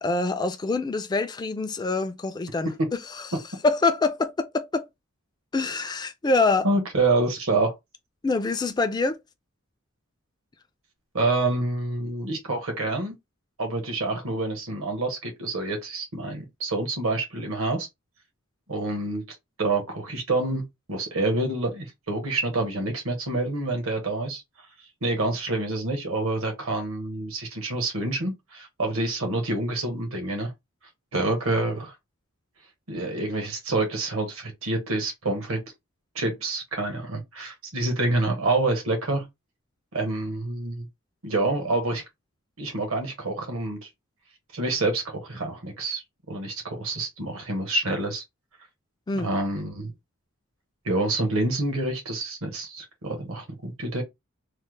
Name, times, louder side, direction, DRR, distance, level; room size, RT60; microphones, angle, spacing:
voice 1, 0.0-3.3 3.6-4.9 5.5-6.7 8.2-9.2 49.1-49.3, left 3 dB, 20° left, 0.3 m, -25 dB
voice 2, 6.6-7.8 11.1-13.2 13.6-17.9 18.7-24.4 25.0-30.5 31.1-31.9 32.9-35.6 36.1-39.3 39.9-40.9 41.2-42.0 42.6-43.8 44.5-48.2 49.1-49.9 50.8-54.0, right 2 dB, 70° right, 1.1 m, -27 dB
3.2 x 2.0 x 3.1 m
head